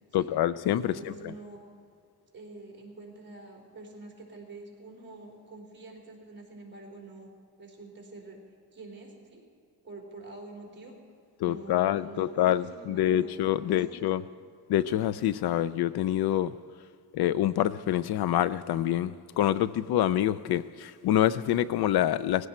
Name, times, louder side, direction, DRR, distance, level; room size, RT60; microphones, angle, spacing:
voice 1, 0.1-1.3 11.4-14.2 14.7-16.5 17.1-22.5, left 12 dB, 75° left, 0.5 m, -26 dB
voice 2, 0.9-1.6 2.3-7.3 7.6-8.4 8.7-9.4 9.8-11.0 11.4-13.4 13.7-14.2, right 2 dB, 30° right, 3.5 m, -46 dB
19.5 x 16.0 x 4.4 m
wide cardioid pair, 165°, 39 cm